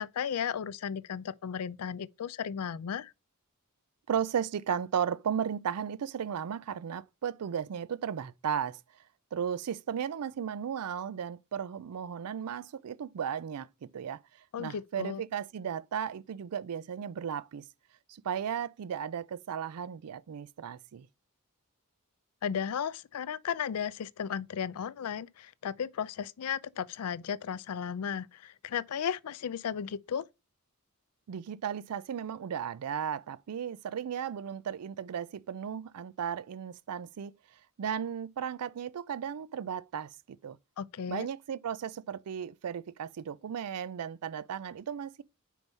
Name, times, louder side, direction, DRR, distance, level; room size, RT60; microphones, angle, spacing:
voice 1, 0.0-3.1 14.5-15.2 22.4-30.2 40.8-41.3, left 7 dB, 80° left, 0.4 m, -35 dB
voice 2, 4.1-8.8 9.3-14.2 14.6-17.6 18.1-21.1 31.3-37.3 37.8-40.6 41.1-45.2, right 8 dB, 85° right, 0.4 m, -35 dB
5.4 x 4.6 x 5.3 m
head